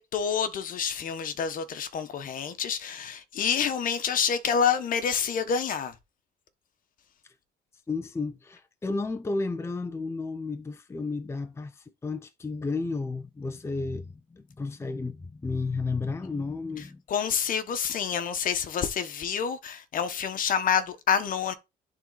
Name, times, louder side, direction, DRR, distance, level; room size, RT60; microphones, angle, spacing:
voice 1, 0.0-5.9 17.1-21.5, left 7 dB, 55° left, 1.3 m, -28 dB
voice 2, 7.9-17.0, left 3 dB, 15° left, 0.7 m, -32 dB
11.5 x 3.9 x 4.1 m
cardioid pair, 110°, 17 cm